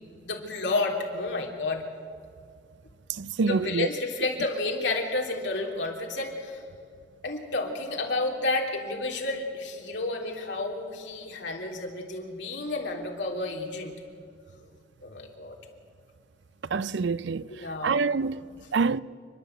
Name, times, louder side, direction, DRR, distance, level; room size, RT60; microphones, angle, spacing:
voice 1, 0.2-1.8 3.5-6.6 7.2-13.9 15.0-15.5 17.5-18.0, left 2 dB, 70° left, 3.3 m, -31 dB
voice 2, 3.2-3.9 16.7-17.5 17.8-19.0, right 4 dB, 70° right, 0.5 m, -26 dB
29.5 x 11.0 x 8.0 m
head